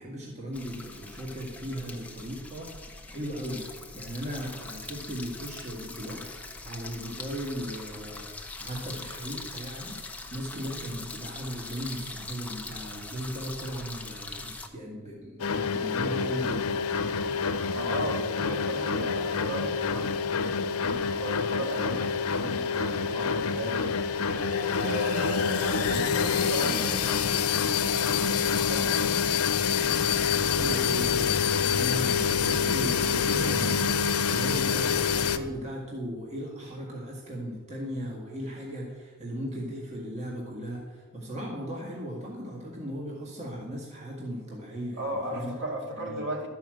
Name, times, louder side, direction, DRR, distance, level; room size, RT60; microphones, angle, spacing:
voice 1, 0.0-6.2 6.6-16.6 30.5-45.5 46.0-46.2, equal, 30° right, -3 dB, 1.8 m, -37 dB
sound 1, 0.5-14.7, left 3 dB, 5° left, 0.8 m, -42 dB
sound 2, 15.4-35.4, left 6 dB, 90° left, 0.8 m, -27 dB
voice 2, 17.7-20.2 20.8-23.9 24.8-26.8 28.4-29.0 45.0-46.5, equal, 55° right, 0 dB, 2.4 m, -35 dB
12.5 x 5.6 x 7.7 m, 1.4 s
head